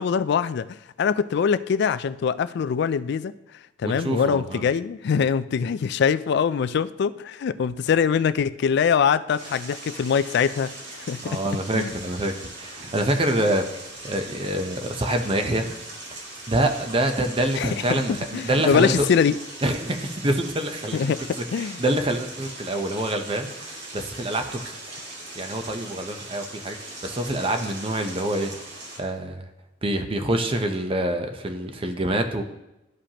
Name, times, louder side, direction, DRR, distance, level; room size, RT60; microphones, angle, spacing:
voice 1, 0.0-3.3 3.8-11.4 11.7-11.9 17.6-19.4 20.9-21.8, left 6 dB, 60° left, 15 dB, 0.3 m, -23 dB
voice 2, 3.8-4.7 11.2-13.7 14.0-15.7 16.5-19.1 19.6-21.1 21.5-23.5 23.9-24.7 25.4-28.5 29.0-29.4 29.8-32.4, right 1 dB, 30° right, 6 dB, 0.7 m, -26 dB
sound 1, 9.3-29.0, right 2 dB, 65° right, 2.0 m, -40 dB
13.0 x 5.0 x 2.9 m, 0.93 s
head